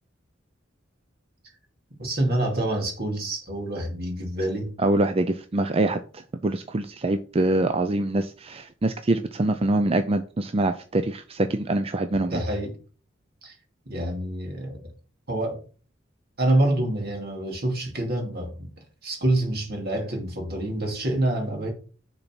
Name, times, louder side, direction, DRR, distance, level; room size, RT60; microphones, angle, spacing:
voice 1, 2.0-4.7 12.1-12.8 13.4-13.5 13.9-14.8 15.3-15.6 16.4-18.7 19.0-21.7, right 1 dB, 55° right, 2.5 m, -27 dB
voice 2, 4.8-12.4, right 2 dB, 30° right, 0.5 m, -24 dB
6.8 x 4.1 x 6.0 m
head